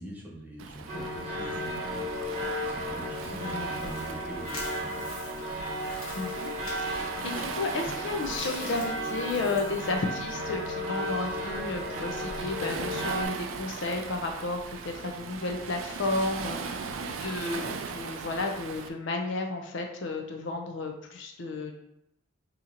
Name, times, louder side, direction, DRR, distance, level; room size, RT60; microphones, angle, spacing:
voice 1, 0.0-4.9 5.2-5.3, right 1 dB, 10° right, -4 dB, 0.6 m, -44 dB
Waves surf, 0.6-18.9, right 5 dB, 75° right, 0.3 m, -40 dB
sound 1, 0.9-13.3, equal, 35° right, 0.9 m, -34 dB
sound 2, 2.8-10.6, left 2 dB, 85° left, 1.2 m, -46 dB
voice 2, 3.3-3.9 6.2-6.5 6.8-21.7, left 3 dB, 60° left, 3 dB, 0.4 m, -33 dB
2.9 x 2.7 x 3.7 m, 0.81 s
head